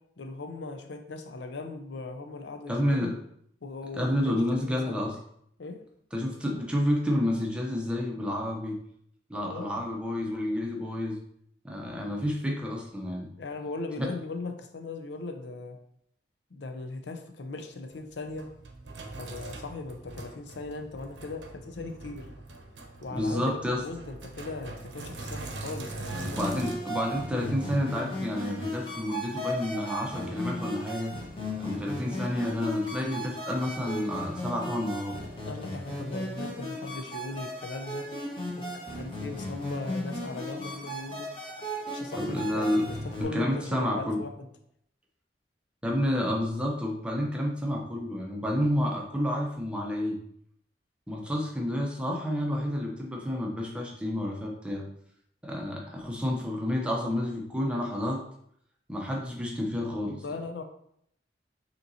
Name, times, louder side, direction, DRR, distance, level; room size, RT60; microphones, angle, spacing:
voice 1, 0.2-3.1 3.6-5.1 5.6-5.8 9.4-9.8 13.4-15.8 16.5-18.5 19.1-22.3 23.0-26.4 35.4-41.3 41.9-44.5 60.2-60.6, left 3 dB, 75° left, 5 dB, 0.5 m, -39 dB
voice 2, 2.7-3.2 3.9-5.2 6.1-8.8 9.3-11.2 11.6-13.3 14.0-14.1 23.1-23.8 26.3-31.2 31.6-35.2 42.1-42.9 43.2-44.2 45.8-50.2 51.1-54.8 55.4-58.2 58.9-60.2, left 1 dB, 5° right, -1 dB, 0.7 m, -30 dB
Sink (filling or washing), 17.9-26.7, right 2 dB, 85° right, 0.7 m, -42 dB
sound 1, 26.1-43.2, equal, 30° left, 1.3 m, -36 dB
6.4 x 2.9 x 2.7 m, 0.70 s
head